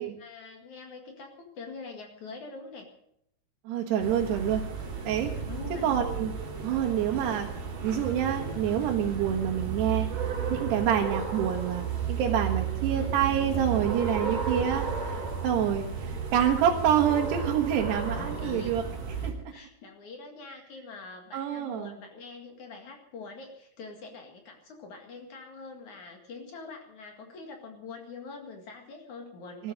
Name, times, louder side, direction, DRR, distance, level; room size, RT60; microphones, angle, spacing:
voice 1, 0.0-2.9 5.5-5.9 14.2-14.4 18.1-18.7 19.1-29.7, left 4 dB, 55° left, 3 dB, 3.1 m, -44 dB
voice 2, 3.7-4.6 5.1-5.3 5.8-6.3 6.6-7.5 7.8-10.1 10.5-18.8 19.2-19.3 21.3-21.9 29.6-29.7, right 9 dB, 90° right, 0 dB, 3.5 m, -27 dB
sound 1, 4.0-19.3, right 6 dB, 55° right, 4.8 m, -33 dB
20.0 x 13.0 x 5.1 m, 0.72 s
omnidirectional pair, 4.6 m